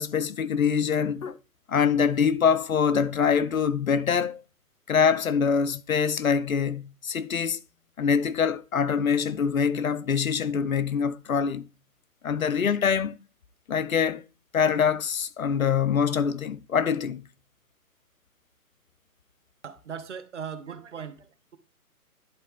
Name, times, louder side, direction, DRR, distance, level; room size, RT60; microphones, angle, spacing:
voice 1, 0.0-1.4 1.7-4.4 4.9-7.6 8.0-11.7 12.2-13.2 13.7-14.2 14.5-17.2, left 6 dB, 65° left, 0.6 m, -24 dB
voice 2, 19.6-21.6, right 7 dB, 50° right, 0.9 m, -39 dB
10.5 x 4.1 x 3.5 m
figure-of-eight pair, 140°, 45 cm